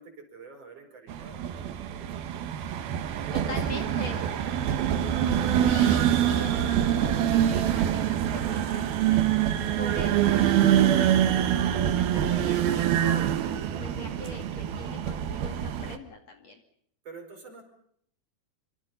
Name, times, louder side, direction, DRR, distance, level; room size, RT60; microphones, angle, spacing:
voice 1, 0.0-2.3 2.9-4.5 17.0-17.6, right 4 dB, 40° right, 4 dB, 5.8 m, -48 dB
sound 1, 1.1-16.0, right 10 dB, 85° right, 3.3 m, -25 dB
voice 2, 3.1-4.3 5.5-16.6, left 3 dB, 50° left, 4 dB, 3.3 m, -42 dB
26.0 x 25.5 x 5.5 m, 0.66 s
omnidirectional pair, 4.3 m